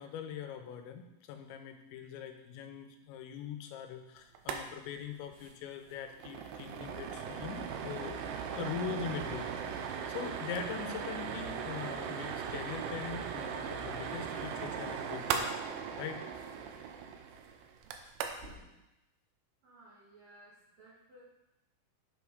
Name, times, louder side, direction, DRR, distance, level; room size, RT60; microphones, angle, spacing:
voice 1, 0.0-8.2 8.5-9.5 10.1-15.5 16.0-16.2 18.4-18.7, left 7 dB, 85° left, 6 dB, 3.0 m, -42 dB
sound 1, 4.4-4.6 4.9-5.0 5.3-5.5 5.9-18.6, right 7 dB, 85° right, 2.9 m, -38 dB
voice 2, 19.6-21.2, right 1 dB, 65° right, -6 dB, 2.5 m, -58 dB
8.2 x 7.1 x 3.5 m, 0.93 s
omnidirectional pair, 5.2 m